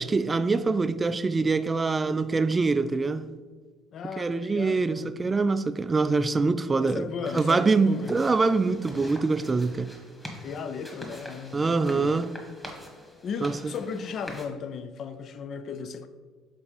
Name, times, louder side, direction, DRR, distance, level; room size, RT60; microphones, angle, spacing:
voice 1, 0.0-3.3 4.2-7.1 7.3-9.9 11.5-12.3 13.4-13.7, right 4 dB, 25° right, 0.3 m, -24 dB
voice 2, 3.9-5.1 6.8-8.2 10.4-12.2 13.2-16.1, left 6 dB, 50° left, 0.4 m, -36 dB
sound 1, 7.3-14.5, equal, 10° left, 1.5 m, -44 dB
4.7 x 4.2 x 5.2 m
hypercardioid pair, 55°, 0 cm